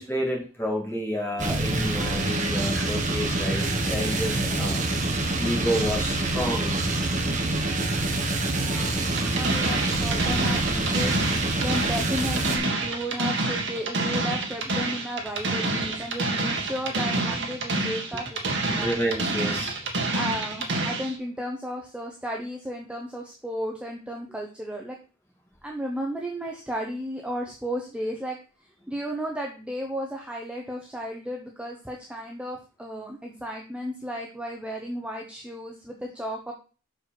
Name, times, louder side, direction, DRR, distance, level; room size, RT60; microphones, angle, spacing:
voice 1, 0.0-4.8 5.1-6.8 18.7-19.7, equal, 10° left, -1 dB, 2.4 m, -30 dB
sound 1, 1.4-12.6, right 2 dB, 40° right, 1.2 m, -26 dB
voice 2, 8.4-19.0 20.1-25.0 25.6-28.4 28.9-36.5, equal, 5° right, 0 dB, 0.9 m, -34 dB
sound 2, 9.2-21.2, right 2 dB, 60° right, 1.7 m, -28 dB
6.1 x 5.1 x 5.9 m, 0.35 s
head